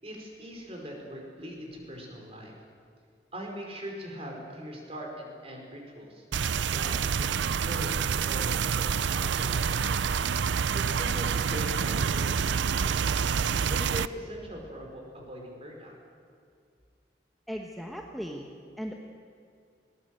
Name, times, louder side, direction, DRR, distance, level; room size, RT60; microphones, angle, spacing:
voice 1, 0.0-2.5 3.3-6.2 6.7-10.1 10.7-13.1 13.7-15.9, equal, 35° right, 1 dB, 4.9 m, -41 dB
sound 1, 6.3-14.1, right 6 dB, 85° right, 0.5 m, -27 dB
voice 2, 17.5-18.5 18.8-18.9, equal, ahead, 0 dB, 1.2 m, -37 dB
20.5 x 19.5 x 7.9 m, 2.3 s
head